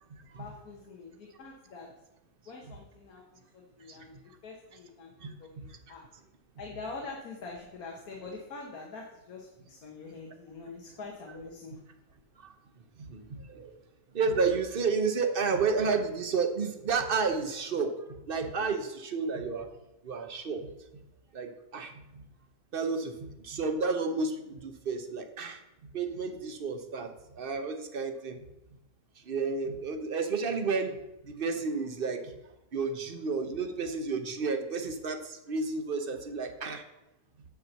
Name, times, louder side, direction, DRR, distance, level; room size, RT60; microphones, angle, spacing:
voice 1, 0.4-1.9 2.5-4.1 4.4-6.0 6.6-11.8, left 3 dB, 85° left, -1 dB, 1.7 m, -45 dB
voice 2, 14.1-17.9 18.3-19.7 20.0-20.6 21.3-22.2 22.7-23.1 23.4-25.6 25.9-28.4 29.3-30.9 31.4-32.2 32.7-36.8, right 4 dB, 45° right, 6 dB, 0.9 m, -31 dB
9.3 x 4.4 x 6.6 m, 0.91 s
omnidirectional pair, 1.5 m